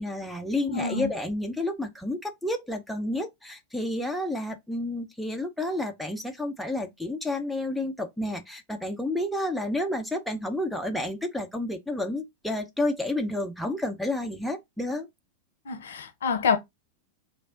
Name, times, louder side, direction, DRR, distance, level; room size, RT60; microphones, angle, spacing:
voice 1, 0.0-15.1, left 1 dB, ahead, 0.7 m, -30 dB
voice 2, 0.7-1.1 15.7-16.6, left 6 dB, 65° left, 0.7 m, -27 dB
3.3 x 2.6 x 3.7 m
figure-of-eight pair, 90°, 0 cm